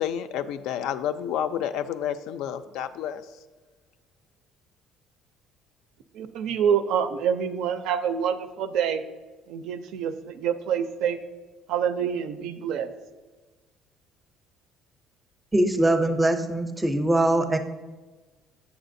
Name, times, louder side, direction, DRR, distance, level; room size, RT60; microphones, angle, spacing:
voice 1, 0.0-3.2, left 9 dB, 80° left, 10 dB, 0.3 m, -30 dB
voice 2, 6.2-9.0 9.5-11.2 11.7-12.9, right 8 dB, 75° right, 10 dB, 0.4 m, -26 dB
voice 3, 15.5-17.6, right 1 dB, 10° right, 7 dB, 0.5 m, -22 dB
8.1 x 6.9 x 2.6 m, 1.3 s
cardioid pair, 135°, 0 cm